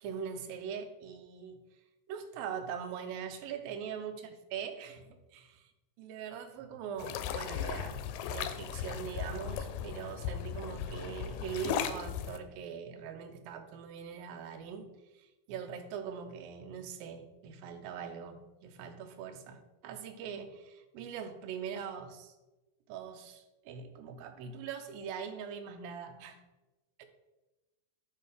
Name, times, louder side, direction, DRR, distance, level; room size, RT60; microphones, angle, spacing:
voice 1, 0.0-1.6 2.1-4.1 4.5-5.7 6.0-8.0 8.3-14.9 15.5-22.3 22.9-26.4 27.0-27.1, right 7 dB, 85° right, 6 dB, 2.5 m, -42 dB
sound 1, 7.0-12.4, left 8 dB, 80° left, 2.1 m, -37 dB
8.9 x 3.2 x 5.0 m, 1.1 s
omnidirectional pair, 4.1 m